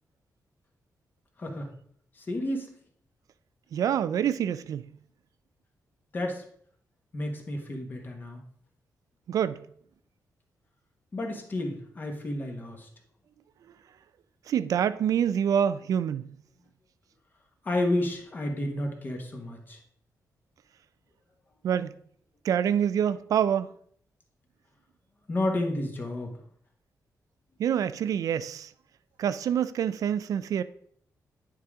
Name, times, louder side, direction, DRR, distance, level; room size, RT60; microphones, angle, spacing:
voice 1, 1.4-1.7 2.1-2.7 6.1-6.4 7.1-8.4 11.1-12.9 17.6-19.8 25.3-26.3, left 1 dB, 30° left, 1.3 m, -31 dB
voice 2, 3.7-4.9 9.3-9.6 14.5-16.3 21.6-21.9 22.4-23.7 27.6-28.7 29.2-30.6, right 9 dB, 65° right, 0.3 m, -26 dB
9.4 x 4.9 x 3.6 m
wide cardioid pair, 175°, 6 cm